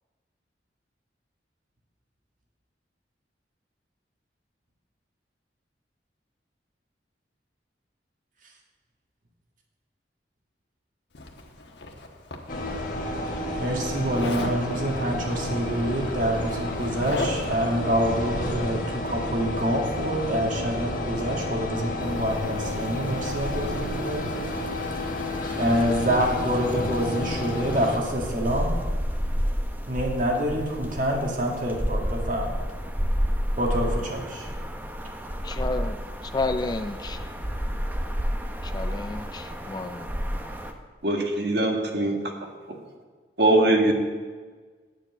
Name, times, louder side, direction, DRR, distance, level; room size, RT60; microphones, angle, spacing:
Zipper (clothing), 11.1-12.8 14.1-14.6 15.8-15.9 16.2-17.6, left 2 dB, 75° left, 1.3 m, -35 dB
sound 1, 12.5-28.0, left 1 dB, 50° left, 1.6 m, -31 dB
voice 1, 13.6-24.3 25.5-28.7 29.9-32.6 33.6-34.5, equal, 45° right, 2.0 m, -26 dB
sound 2, 22.0-40.7, equal, 10° right, 0.7 m, -31 dB
voice 2, 35.4-35.9 36.3-37.3 38.6-40.1, left 3 dB, 25° left, 0.4 m, -31 dB
voice 3, 41.0-42.2 43.4-43.9, right 2 dB, 60° right, 1.6 m, -21 dB
9.0 x 7.4 x 8.7 m
head